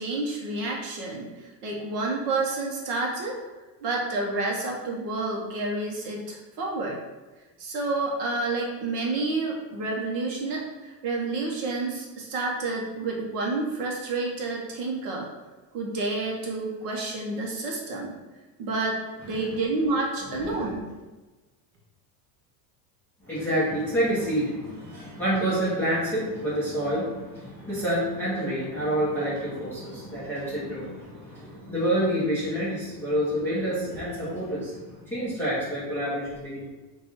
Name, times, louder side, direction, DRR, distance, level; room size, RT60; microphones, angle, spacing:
voice 1, 0.0-3.4 3.8-7.0 7.6-15.3 15.7-18.1 18.6-19.0 19.2-20.9, right 3 dB, 40° right, -1 dB, 0.6 m, -29 dB
voice 2, 20.4-20.8 23.2-36.7, equal, 5° left, -12 dB, 0.5 m, -28 dB
4.0 x 2.3 x 4.4 m, 1.2 s
cardioid pair, 175°, 50 cm